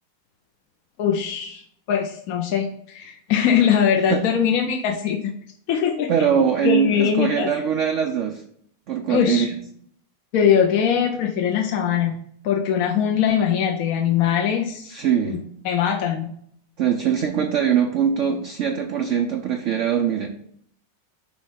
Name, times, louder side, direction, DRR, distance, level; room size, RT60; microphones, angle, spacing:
voice 1, 1.0-1.6 1.9-5.3 5.7-6.1 6.6-7.5 9.1-9.5 10.3-12.2 12.4-14.9 15.2-15.4 15.6-16.3, left 8 dB, 65° left, 3 dB, 0.9 m, -21 dB
voice 2, 6.1-8.4 8.9-9.6 14.9-15.4 16.8-20.3, right 8 dB, 80° right, 4 dB, 0.6 m, -22 dB
6.1 x 3.1 x 5.6 m, 0.65 s
omnidirectional pair, 1.9 m